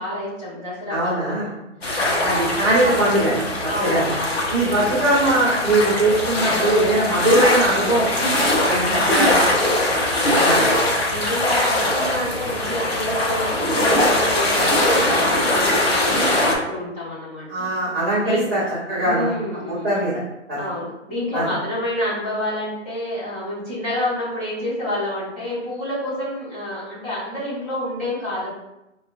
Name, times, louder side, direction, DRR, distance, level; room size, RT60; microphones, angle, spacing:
voice 1, 0.0-1.5 2.0-2.2 2.8-2.9 3.7-4.9 8.7-9.2 9.9-10.6 11.1-17.7 18.2-18.5 19.0-19.9 20.6-28.5, left 1 dB, 10° left, -11 dB, 1.1 m, -28 dB
voice 2, 0.9-1.5 2.2-3.3 3.8-4.1 4.5-8.1 8.7-9.5 10.2-10.6 17.5-18.6 18.9-19.3 19.7-20.2 20.5-20.7 21.3-21.5, right 1 dB, 10° right, -10 dB, 0.5 m, -20 dB
sound 1, 1.8-16.5, left 1 dB, 55° left, 0.8 m, -21 dB
4.5 x 2.1 x 2.5 m, 0.92 s
hypercardioid pair, 165°, 38 cm